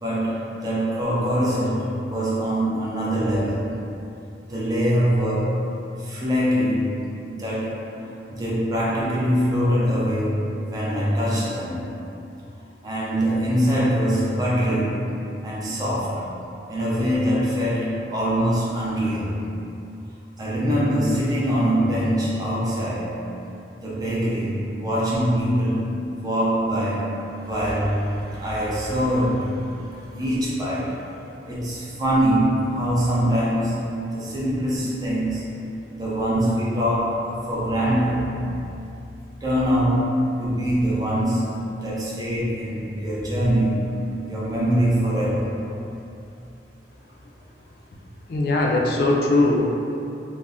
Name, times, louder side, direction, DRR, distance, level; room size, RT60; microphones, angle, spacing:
voice 1, 0.0-3.7 4.5-5.6 6.0-7.0 7.3-7.9 8.3-12.0 12.8-15.1 15.4-16.3 16.7-19.4 20.4-23.2 23.8-31.0 31.5-35.5 35.9-38.3 39.4-44.0 44.2-45.6, equal, 20° right, -7 dB, 0.5 m, -23 dB
voice 2, 48.3-49.6, left 2 dB, 55° left, -1 dB, 0.3 m, -20 dB
2.4 x 2.0 x 3.3 m, 2.7 s
head